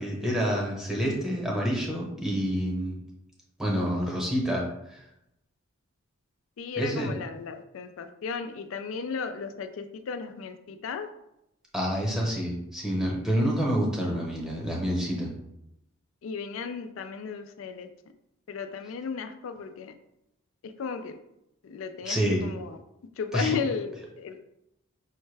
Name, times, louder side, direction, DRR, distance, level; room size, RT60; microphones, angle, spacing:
voice 1, 0.0-3.0 3.6-5.0 6.8-7.1 11.7-15.3 22.0-22.5 23.3-23.6, equal, 5° right, -2 dB, 0.9 m, -28 dB
voice 2, 6.6-11.1 16.2-17.9 18.5-19.9 20.6-21.2 21.6-22.8 23.2-24.4, left 6 dB, 70° left, 8 dB, 0.4 m, -35 dB
5.5 x 2.1 x 3.3 m, 0.83 s
head